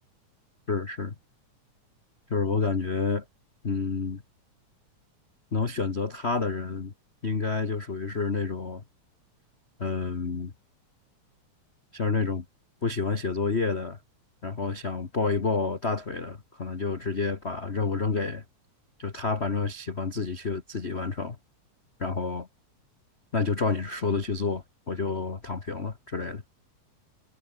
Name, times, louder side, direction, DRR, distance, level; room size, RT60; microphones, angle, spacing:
voice 1, 0.7-1.1 2.3-3.2 3.6-4.2 5.5-6.9 7.2-8.8 9.8-10.5 11.9-12.4 12.8-14.0 14.4-18.4 19.0-21.4 22.0-22.5 23.3-26.4, left 4 dB, 35° left, 1.0 m, -29 dB
omnidirectional pair, 3.4 m